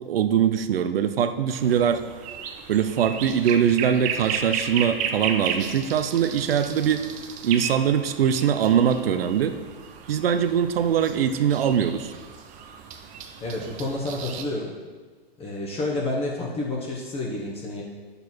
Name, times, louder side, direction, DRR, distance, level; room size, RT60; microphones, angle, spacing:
voice 1, 0.1-2.0 2.7-7.1 7.4-9.6 10.1-12.1, right 8 dB, 70° right, 10 dB, 0.8 m, -22 dB
sound 1, 1.5-14.4, right 7 dB, 25° right, 0.7 m, -34 dB
voice 2, 13.4-14.7 15.4-17.8, left 2 dB, 20° left, -3 dB, 1.4 m, -29 dB
9.2 x 6.8 x 4.5 m, 1.4 s
hypercardioid pair, 125°, 31 cm